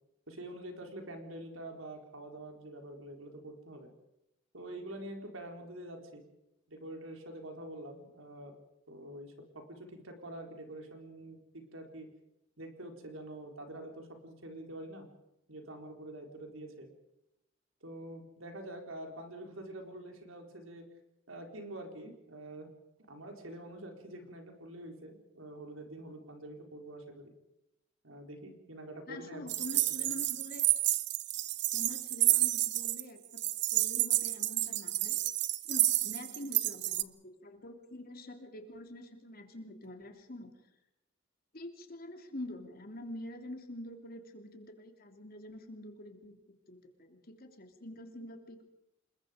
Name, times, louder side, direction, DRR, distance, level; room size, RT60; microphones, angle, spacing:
voice 1, 0.3-3.9 4.5-6.2 6.7-8.6 8.9-12.1 12.6-15.1 15.5-16.9 17.8-20.9 21.3-22.7 23.1-27.3 28.0-30.1, right 1 dB, 90° right, 4 dB, 4.2 m, -46 dB
voice 2, 29.1-30.7 31.7-33.4 33.7-35.2 35.6-40.5 41.5-46.4 46.7-48.7, left 1 dB, 50° left, 4 dB, 3.1 m, -46 dB
sound 1, 29.5-33.0 33.4-37.0, right 16 dB, 60° right, 0.8 m, -30 dB
28.0 x 21.0 x 5.2 m, 0.88 s
head